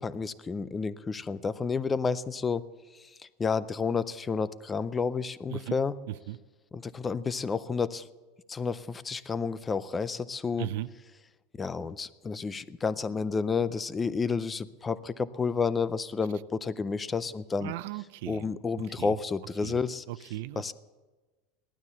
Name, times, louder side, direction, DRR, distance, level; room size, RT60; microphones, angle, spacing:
voice 1, 0.0-2.6 3.4-6.0 6.7-8.1 8.5-10.7 11.6-17.7 18.3-20.0 20.6-20.7, left 5 dB, 15° left, 16 dB, 0.4 m, -30 dB
voice 2, 10.6-10.9 17.6-18.4 18.8-19.2 19.6-19.8 20.1-20.7, right 15 dB, 65° right, 18 dB, 0.5 m, -37 dB
16.5 x 12.5 x 7.0 m, 1.2 s
supercardioid pair, 165°, 0 cm